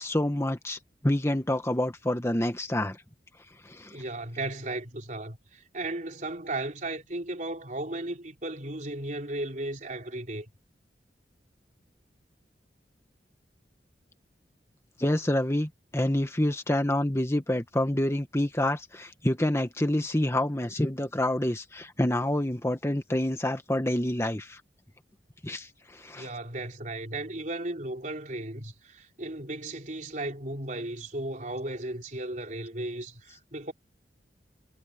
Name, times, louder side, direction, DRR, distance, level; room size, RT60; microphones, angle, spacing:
voice 1, 0.0-3.0 3.6-4.0 15.0-24.6 25.4-26.3, left 1 dB, 15° left, 1.4 m, -27 dB
voice 2, 3.9-10.5 26.1-33.7, right 2 dB, 45° right, 3.9 m, -35 dB
head